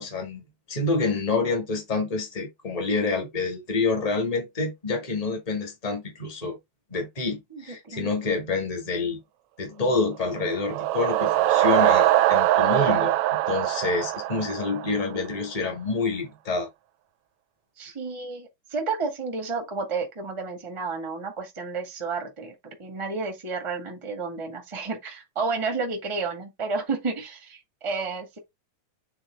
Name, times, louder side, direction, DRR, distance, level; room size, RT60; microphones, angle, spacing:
voice 1, 0.0-6.6 6.9-9.2 9.6-16.7, left 3 dB, 15° left, 1.7 m, -27 dB
voice 2, 7.5-8.1 17.8-22.5 22.8-28.4, right 4 dB, 15° right, 1.3 m, -31 dB
sound 1, 10.3-15.2, right 14 dB, 75° right, 1.7 m, -22 dB
8.8 x 4.0 x 3.5 m
omnidirectional pair, 3.7 m